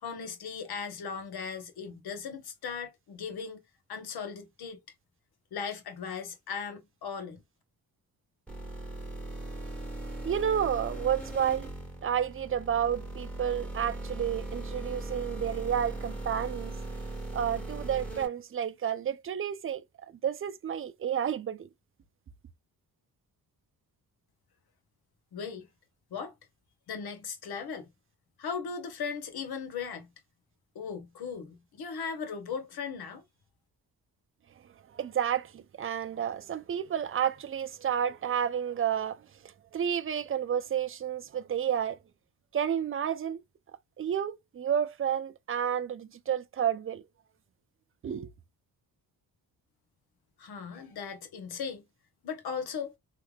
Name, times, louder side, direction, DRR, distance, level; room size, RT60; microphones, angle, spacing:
voice 1, 0.0-3.6 3.9-4.8 5.5-7.4 25.3-25.7 26.1-26.3 26.9-27.9 28.4-30.1 30.7-33.2 50.4-51.8 52.2-52.9, left 6 dB, 75° left, 1.2 m, -37 dB
sound 1, 8.5-18.3, right 2 dB, 5° left, 1.5 m, -39 dB
voice 2, 10.2-11.7 12.0-16.7 17.3-19.8 20.2-21.7 34.9-39.2 39.7-42.0 42.5-43.4 44.0-47.0 48.0-48.3, right 9 dB, 35° right, 0.5 m, -30 dB
3.3 x 3.2 x 2.3 m
wide cardioid pair, 130°, 38 cm